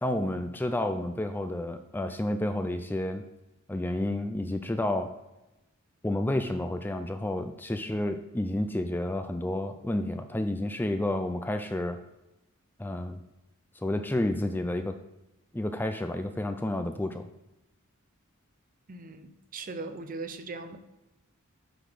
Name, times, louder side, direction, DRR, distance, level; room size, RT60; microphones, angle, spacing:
voice 1, 0.0-3.2 3.7-5.2 6.0-12.0 12.8-13.2 13.8-15.0 15.5-17.2, left 1 dB, 10° left, 8 dB, 0.3 m, -30 dB
voice 2, 18.9-20.8, right 3 dB, 40° right, 9 dB, 0.6 m, -39 dB
8.1 x 3.9 x 6.1 m, 0.97 s
head